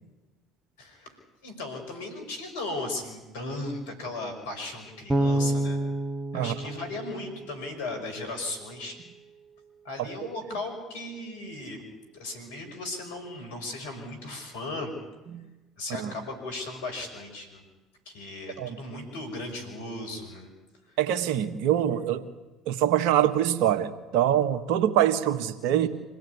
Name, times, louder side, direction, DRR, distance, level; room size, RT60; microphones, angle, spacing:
voice 1, 0.8-1.2 1.4-5.8 6.3-9.0 9.8-11.8 12.1-14.9 15.8-17.6 18.1-20.5 20.9-21.0, left 2 dB, 80° left, 5 dB, 5.8 m, -36 dB
Bass guitar, 5.1-8.1, right 1 dB, 20° right, 1.5 m, -29 dB
voice 2, 21.0-22.2 22.6-25.9, right 11 dB, 70° right, 10 dB, 1.6 m, -24 dB
25.5 x 17.5 x 9.6 m, 1.1 s
hypercardioid pair, 65°, 0 cm